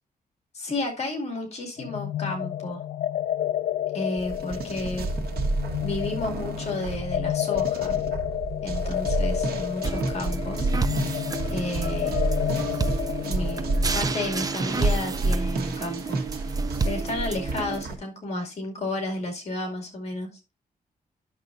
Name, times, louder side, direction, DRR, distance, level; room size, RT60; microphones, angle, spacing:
voice 1, 0.5-2.8 3.9-5.1 5.8-8.0 8.6-10.7 11.5-12.2 13.2-13.7 13.9-16.2 16.8-20.3, left 2 dB, 45° left, 1 dB, 2.5 m, -32 dB
sound 1, 1.8-15.4, left 11 dB, 75° left, 0.4 m, -31 dB
sound 2, 4.2-17.9, right 2 dB, 80° right, 1.4 m, -30 dB
sound 3, 9.8-17.8, right 4 dB, 25° right, 0.5 m, -31 dB
11.5 x 6.6 x 2.6 m, 0.27 s
wide cardioid pair, 170°, 15 cm